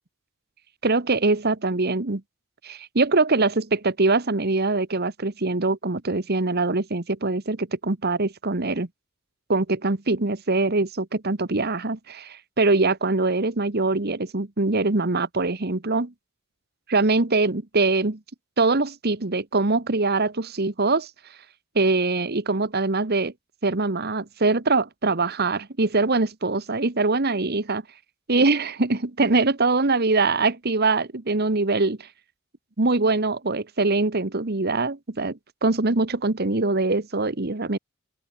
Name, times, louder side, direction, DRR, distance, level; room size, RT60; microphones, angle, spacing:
voice 1, 0.8-2.2 2.6-8.9 9.5-16.1 16.9-18.2 18.6-21.1 21.7-23.3 23.6-27.8 28.3-32.1 32.8-37.8, right 3 dB, 45° right, 1.3 m, -23 dB
open air
head